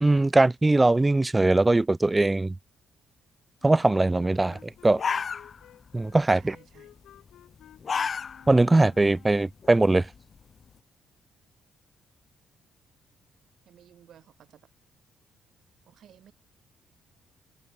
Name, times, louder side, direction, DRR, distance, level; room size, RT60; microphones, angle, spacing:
voice 1, 0.0-2.5 3.6-5.0 5.9-6.6 8.5-10.1, right 2 dB, 15° right, 0.4 m, -21 dB
Wind instrument woodwind instrument, 3.6-9.5, left 12 dB, 80° left, 6.0 m, -54 dB
sound 1, 4.5-4.6 4.9-5.9 6.2-6.5 7.5-8.6 9.0-9.1 9.6-10.6, left 6 dB, 45° left, 0.9 m, -31 dB
voice 2, 6.3-6.9 13.7-14.7 15.8-16.3, right 10 dB, 65° right, 5.5 m, -55 dB
open air
cardioid pair, 90°, 0 cm